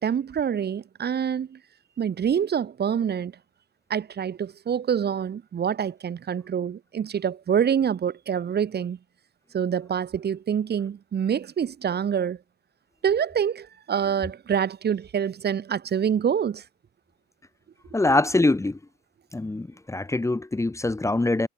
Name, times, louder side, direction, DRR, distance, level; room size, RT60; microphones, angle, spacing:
voice 1, 0.0-1.6 2.0-3.3 3.9-9.0 9.5-12.4 13.0-16.6, right 8 dB, 55° right, 7.4 m, -26 dB
voice 2, 17.9-18.8 19.3-21.5, left 2 dB, 15° left, 1.9 m, -23 dB
cardioid pair, 90°, 20 cm